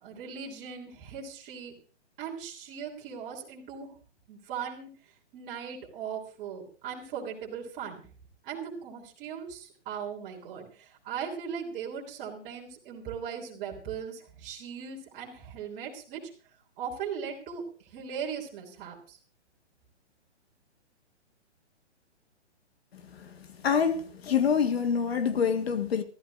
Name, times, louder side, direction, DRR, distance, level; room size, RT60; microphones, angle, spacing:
voice 1, 0.0-1.8 2.2-3.9 4.3-4.9 5.3-8.0 8.4-16.2 16.8-17.6 17.9-19.2, right 7 dB, 25° right, 3.5 m, -38 dB
voice 2, 23.6-26.0, left 7 dB, 60° left, 1.9 m, -26 dB
24.0 x 14.0 x 2.6 m
hypercardioid pair, 160°, 35 cm